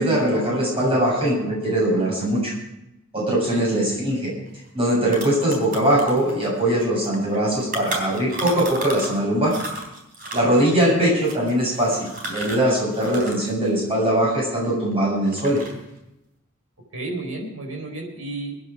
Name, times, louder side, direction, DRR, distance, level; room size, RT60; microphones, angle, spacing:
voice 1, 0.0-2.5 3.1-4.3 4.7-9.5 10.3-15.6, right 1 dB, 25° right, -4 dB, 7.5 m, -21 dB
voice 2, 3.3-3.6 10.5-10.7 16.9-18.6, right 2 dB, 85° right, 2 dB, 4.4 m, -32 dB
sound 1, 4.5-4.6 4.8-9.2 9.5-13.5 13.8-14.9 15.3-15.9, right 1 dB, 40° right, 3.6 m, -34 dB
23.5 x 10.0 x 5.0 m, 0.87 s
head